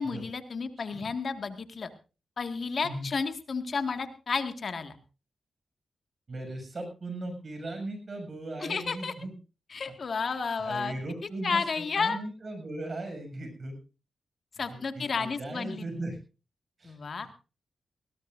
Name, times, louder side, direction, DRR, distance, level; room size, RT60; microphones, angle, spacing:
voice 1, 0.0-1.9 2.4-4.9 8.6-9.1 9.7-11.0 11.4-12.2 14.6-15.8 16.8-17.3, left 5 dB, 65° left, 7 dB, 1.9 m, -32 dB
voice 2, 6.3-9.3 10.3-13.8 14.7-16.2 16.8-17.0 17.2-17.3, right 2 dB, 55° right, 6 dB, 7.0 m, -38 dB
20.0 x 17.5 x 2.6 m, 0.33 s
cardioid pair, 50°, 0 cm